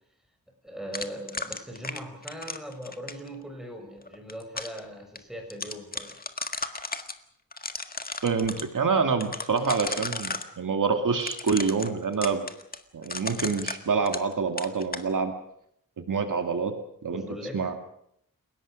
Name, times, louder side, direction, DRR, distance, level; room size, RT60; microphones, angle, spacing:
voice 1, 0.6-6.1 17.1-17.7, equal, ahead, 3 dB, 6.5 m, -40 dB
sound 1, 0.9-3.3 4.1-4.8 5.2-5.3 5.5-7.1 7.5-8.6 9.2-10.5 11.2-14.3 14.6-15.1, left 3 dB, 25° left, 1.8 m, -34 dB
voice 2, 8.2-12.4 12.9-15.3 16.1-16.7 17.0-17.2 17.5-17.7, right 5 dB, 65° right, 6 dB, 2.2 m, -26 dB
30.0 x 17.5 x 6.4 m, 0.72 s
wide cardioid pair, 120°, 34 cm